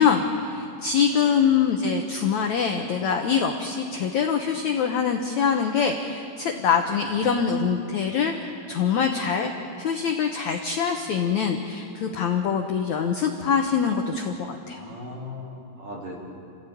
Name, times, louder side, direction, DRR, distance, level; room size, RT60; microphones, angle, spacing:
voice 1, 0.0-9.5 9.8-14.8, left 6 dB, 80° left, 4 dB, 1.7 m, -24 dB
voice 2, 14.7-16.2, left 2 dB, 50° right, -2 dB, 4.9 m, -39 dB
29.0 x 14.5 x 9.3 m, 2.6 s
omnidirectional pair, 4.9 m